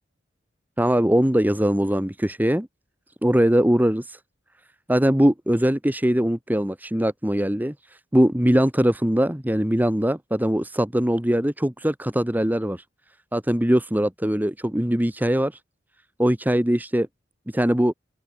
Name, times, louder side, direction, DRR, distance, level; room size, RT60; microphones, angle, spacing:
voice 1, 0.8-2.7 3.2-4.2 4.9-12.8 13.3-15.6 16.2-17.1 17.5-17.9, equal, 10° right, 1.4 m, -21 dB
open air
head